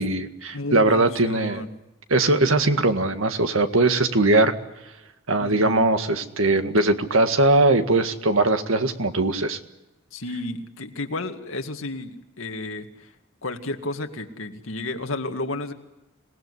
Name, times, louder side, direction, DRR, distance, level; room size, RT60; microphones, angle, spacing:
voice 1, 0.0-1.6 2.1-4.6 5.3-9.6, right 2 dB, 85° right, 7 dB, 1.9 m, -20 dB
voice 2, 0.5-1.7 5.4-5.9 10.1-13.1 13.4-15.7, left 2 dB, 85° left, 5 dB, 2.1 m, -32 dB
27.0 x 18.5 x 9.8 m, 0.95 s
head